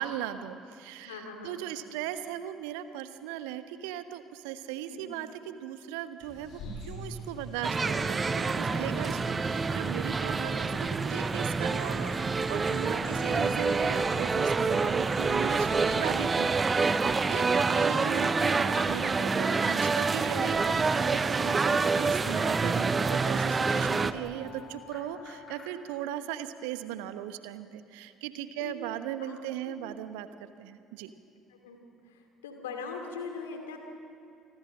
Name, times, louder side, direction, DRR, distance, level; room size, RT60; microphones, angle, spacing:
voice 1, 0.0-16.5 16.9-30.3 30.6-31.1, right 11 dB, 65° right, 11 dB, 1.1 m, -38 dB
voice 2, 1.0-1.6 4.9-5.2 8.7-9.4 12.9-13.5 17.9-18.4 28.6-28.7 29.2-29.4 29.6-29.7 31.5-31.8 32.0-33.8, left 4 dB, 70° left, 4 dB, 3.1 m, -42 dB
sound 1, 6.2-16.3, left 1 dB, 50° left, 7.0 m, -46 dB
sound 2, 7.6-24.1, right 4 dB, 25° right, 0.9 m, -27 dB
sound 3, 11.9-25.7, left 1 dB, 20° left, 4.9 m, -48 dB
28.5 x 20.5 x 7.6 m, 2.5 s
figure-of-eight pair, 55°, 0 cm